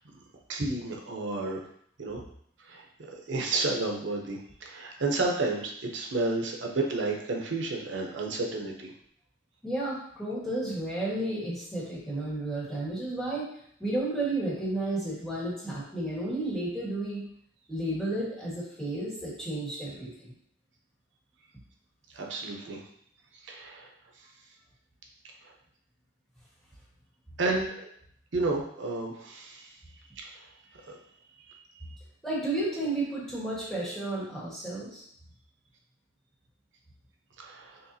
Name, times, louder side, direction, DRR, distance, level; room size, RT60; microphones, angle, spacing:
voice 1, 0.5-1.6 2.0-2.2 2.6-8.9 22.1-22.8 23.4-23.9 27.4-27.7 28.3-29.7 30.2-30.5 30.8-31.0 37.4-37.8, right 2 dB, 80° right, 1 dB, 0.7 m, -31 dB
voice 2, 9.6-13.4 13.8-17.2 17.7-20.3 32.2-35.0, right 2 dB, ahead, -8 dB, 1.4 m, -32 dB
6.6 x 2.4 x 2.7 m, 0.67 s
head